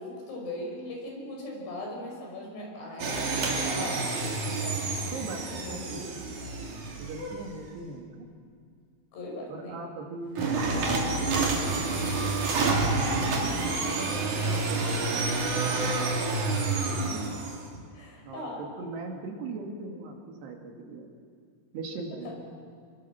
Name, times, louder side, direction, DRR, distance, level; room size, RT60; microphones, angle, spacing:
voice 1, 0.0-4.0 4.5-5.1 5.5-6.7 7.2-7.4 9.1-9.8 13.0-13.3 16.8-17.3 17.9-18.6 22.2-22.4, left 1 dB, 90° left, -1 dB, 8.1 m, -39 dB
sound 1, 3.0-7.5 10.4-17.6, right 3 dB, 50° right, 3.9 m, -28 dB
voice 2, 5.1-6.1 7.0-8.3 9.5-10.5 10.9-12.1 13.8-15.9 18.2-21.1 21.7-22.4, right 3 dB, 80° right, 2 dB, 4.5 m, -40 dB
26.5 x 22.0 x 6.0 m, 2.2 s
omnidirectional pair, 4.7 m